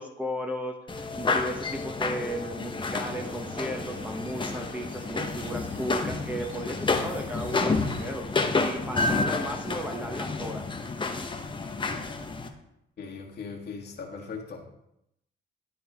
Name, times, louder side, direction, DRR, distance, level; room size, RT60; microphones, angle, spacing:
voice 1, 0.0-8.3 8.6-10.6, equal, 10° right, 2 dB, 1.1 m, -35 dB
sound 1, 0.9-12.5, left 3 dB, 25° left, 0.9 m, -30 dB
sound 2, 2.9-8.0, right 2 dB, 70° right, 1.3 m, -47 dB
voice 2, 13.0-14.7, left 5 dB, 55° left, -1 dB, 1.8 m, -39 dB
11.5 x 4.2 x 3.5 m, 0.82 s
cardioid pair, 90°, 20 cm